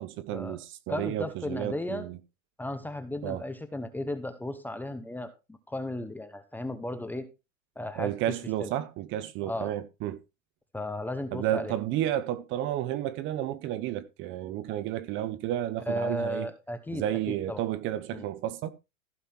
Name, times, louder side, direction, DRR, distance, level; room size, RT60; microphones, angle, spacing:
voice 1, 0.0-2.2 3.2-3.4 8.0-10.2 11.3-16.5 16.9-18.7, right 12 dB, 30° right, 0.8 m, -32 dB
voice 2, 0.9-2.0 2.6-5.3 5.7-7.3 7.8-8.3 8.6-8.7 9.5-9.7 10.7-11.7 15.9-17.0 17.5-17.6 18.1-18.3, left 1 dB, 5° left, 0.8 m, -35 dB
15.0 x 5.6 x 4.4 m
supercardioid pair, 150°, 40 cm